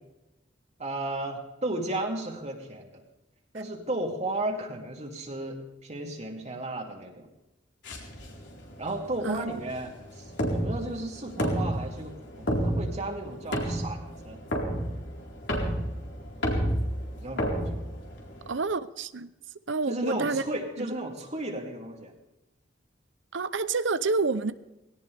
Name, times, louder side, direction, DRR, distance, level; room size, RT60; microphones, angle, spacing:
voice 1, 0.8-3.0 3.5-7.3 8.8-14.4 17.2-17.8 19.9-22.1, right 1 dB, 35° right, 1 dB, 2.8 m, -34 dB
sound 1, 7.8-18.5, equal, 70° left, 4.2 m, -31 dB
voice 2, 18.5-19.3 19.7-20.4 20.8-20.9 23.3-24.5, right 4 dB, 75° right, 14 dB, 0.8 m, -28 dB
20.0 x 18.0 x 3.5 m, 0.96 s
head